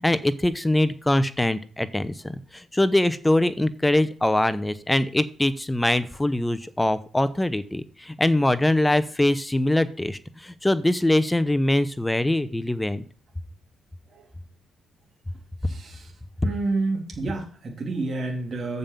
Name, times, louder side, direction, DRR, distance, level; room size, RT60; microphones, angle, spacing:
voice 1, 0.0-13.0, left 1 dB, 10° left, 14 dB, 0.8 m, -23 dB
voice 2, 15.6-16.1 16.4-18.8, right 3 dB, 40° right, -1 dB, 2.9 m, -29 dB
7.1 x 5.3 x 7.2 m, 0.40 s
cardioid pair, 90°, 0 cm